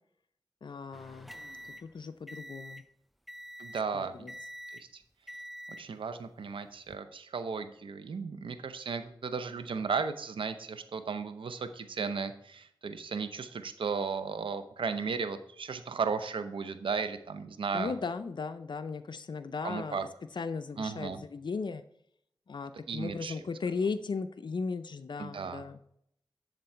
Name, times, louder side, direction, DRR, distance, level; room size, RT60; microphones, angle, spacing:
voice 1, 0.6-1.3 1.8-2.8 3.9-4.3 17.7-20.0 20.3-21.8 22.5-25.8, left 4 dB, 65° left, 10 dB, 0.5 m, -36 dB
sound 1, 0.9-2.9 3.3-3.9 4.3-4.9 5.3-5.9 6.7-7.0, equal, ahead, 0.4 m, -46 dB
voice 2, 3.6-4.3 4.7-5.0 5.8-17.9 19.6-20.0 20.8-21.2 22.9-23.3 25.2-25.6, right 5 dB, 85° right, 10 dB, 0.7 m, -35 dB
10.5 x 3.8 x 4.4 m, 0.70 s
cardioid pair, 45°, 9 cm